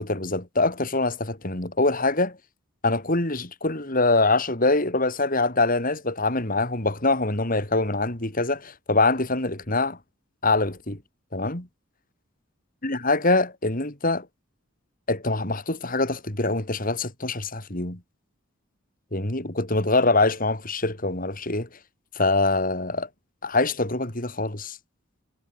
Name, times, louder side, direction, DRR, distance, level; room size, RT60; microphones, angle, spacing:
voice 1, 0.0-2.4 2.8-10.0 10.4-11.0 11.3-11.7 12.8-14.3 15.1-18.0 19.1-21.7 22.2-23.1 23.4-24.8, left 2 dB, 40° left, 3.8 m, -24 dB
head